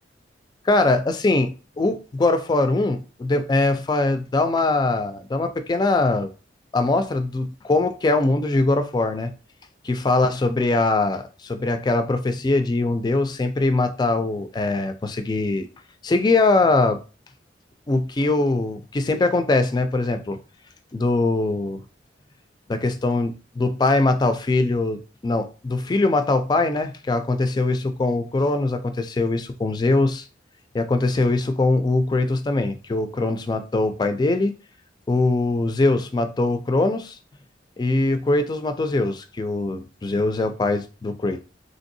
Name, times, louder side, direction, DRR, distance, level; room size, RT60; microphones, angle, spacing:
voice 1, 0.7-6.3 6.7-9.3 9.8-15.7 16.0-17.0 17.9-20.4 20.9-21.8 22.7-30.2 30.7-34.5 35.1-37.2 37.8-41.4, left 2 dB, 25° left, 0.3 m, -22 dB
3.3 x 2.6 x 2.6 m
head